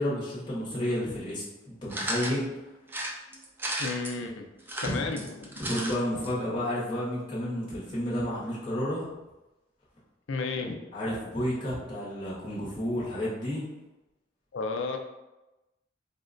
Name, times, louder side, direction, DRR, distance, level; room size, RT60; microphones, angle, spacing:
voice 1, 0.0-2.5 4.8-5.1 5.6-9.1 10.9-13.6, left 1 dB, 25° left, -7 dB, 0.8 m, -31 dB
sound 1, 1.9-2.4 2.9-4.1 4.6-5.9 6.2-6.3 6.5-6.6, right 1 dB, 10° right, 0.3 m, -34 dB
voice 2, 3.8-4.5 4.8-5.5 10.3-10.8 14.5-15.0, left 4 dB, 75° left, 4 dB, 0.4 m, -32 dB
4.1 x 2.1 x 2.4 m, 1.0 s
head